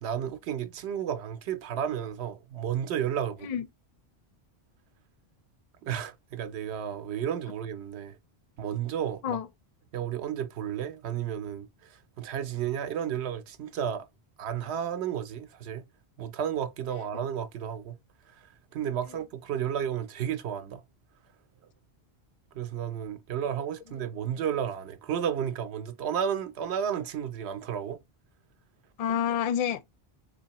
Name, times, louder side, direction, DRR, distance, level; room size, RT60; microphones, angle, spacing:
voice 1, 0.0-3.5 5.8-8.2 8.6-9.4 9.9-14.1 14.4-15.8 16.2-18.0 18.3-20.8 22.5-28.0, right 9 dB, 85° right, 0.9 m, -32 dB
voice 2, 29.0-29.8, left 8 dB, 50° left, 0.4 m, -28 dB
3.8 x 2.8 x 2.9 m
omnidirectional pair, 1.1 m